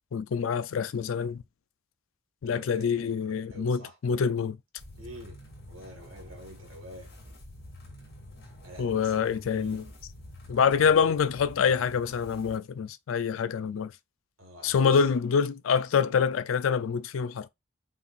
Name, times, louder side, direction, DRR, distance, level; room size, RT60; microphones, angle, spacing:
voice 1, 0.1-1.4 2.4-4.6 8.8-9.8 10.5-13.9 14.6-17.5, left 6 dB, 75° left, 0.4 m, -26 dB
voice 2, 2.4-4.0 4.9-5.4 5.7-7.1 8.6-9.8 14.4-15.1, right 1 dB, 85° right, 1.5 m, -47 dB
sound 1, 4.8-12.6, left 1 dB, 50° left, 2.3 m, -48 dB
5.6 x 2.5 x 2.4 m
head